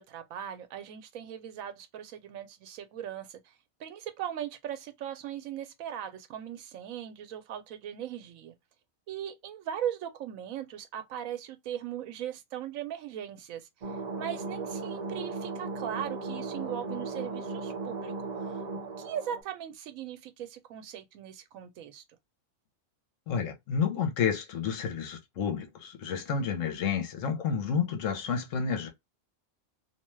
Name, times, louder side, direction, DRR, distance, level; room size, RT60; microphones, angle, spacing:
voice 1, 0.0-3.4 3.8-8.5 9.1-13.6 14.2-22.0, right 10 dB, 85° right, 1.0 m, -39 dB
sound 1, 13.8-19.4, right 3 dB, 60° right, 0.4 m, -36 dB
voice 2, 23.3-28.9, left 6 dB, 75° left, 1.0 m, -30 dB
2.6 x 2.2 x 3.0 m
omnidirectional pair, 1.4 m